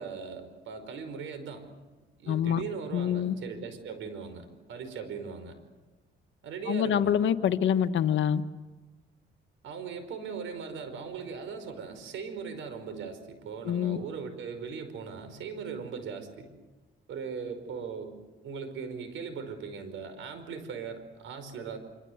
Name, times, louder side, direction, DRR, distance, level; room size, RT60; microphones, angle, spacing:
voice 1, 0.0-1.7 2.2-5.6 6.4-7.2 9.6-16.5 17.1-18.2 18.4-21.8, right 6 dB, 80° right, 9 dB, 5.3 m, -39 dB
voice 2, 2.3-2.6 2.9-3.3 6.7-8.4 13.6-14.0, left 9 dB, 70° left, 9 dB, 1.4 m, -26 dB
26.0 x 25.0 x 8.1 m, 1.2 s
cardioid pair, 90°, 20 cm